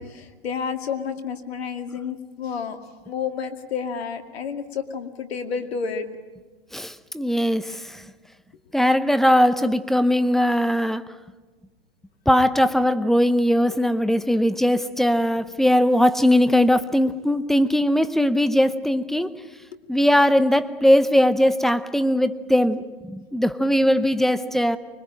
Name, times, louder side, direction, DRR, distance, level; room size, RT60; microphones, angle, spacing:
voice 1, 0.0-2.8 3.1-6.1, left 6 dB, 75° left, 7 dB, 2.4 m, -30 dB
voice 2, 6.7-8.0 8.7-11.0 12.3-19.4 19.9-24.8, equal, ahead, 13 dB, 0.7 m, -20 dB
25.0 x 21.5 x 8.9 m, 1.3 s
hypercardioid pair, 120°, 31 cm